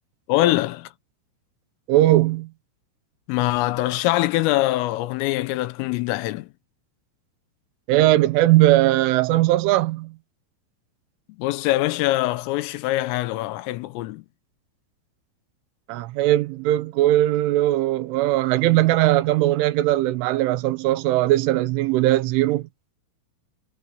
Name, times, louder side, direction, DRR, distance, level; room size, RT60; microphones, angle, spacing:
voice 1, 0.3-0.9 3.3-6.5 11.4-14.3, left 16 dB, 90° left, 3.5 m, -23 dB
voice 2, 1.9-2.5 7.9-10.2 15.9-22.7, right 15 dB, 80° right, 3.3 m, -19 dB
omnidirectional pair, 5.7 m